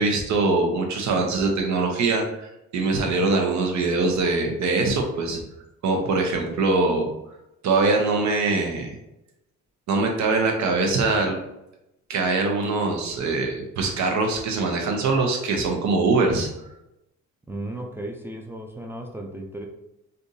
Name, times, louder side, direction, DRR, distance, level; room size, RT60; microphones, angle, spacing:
voice 1, 0.0-5.4 5.8-7.1 7.6-8.9 9.9-11.4 12.1-16.5, right 3 dB, 65° right, 2 dB, 0.8 m, -23 dB
voice 2, 17.5-19.7, right 1 dB, 10° right, 1 dB, 0.4 m, -35 dB
3.4 x 2.6 x 2.7 m, 0.88 s
cardioid pair, 90°, 30 cm